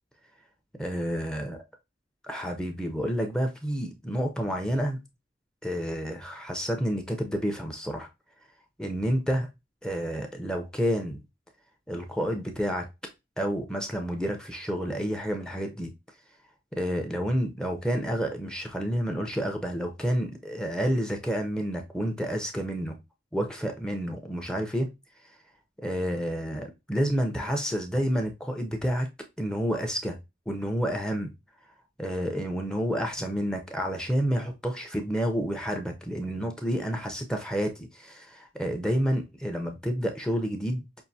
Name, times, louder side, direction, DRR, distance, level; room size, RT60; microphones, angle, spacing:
voice 1, 0.8-1.6 2.3-5.0 5.6-8.1 8.8-9.5 9.8-11.2 11.9-12.9 13.4-15.9 16.8-23.0 23.3-24.9 25.8-29.1 29.4-30.2 30.5-31.3 32.0-40.8, equal, 5° left, 0.6 m, -29 dB
5.5 x 2.6 x 2.7 m
head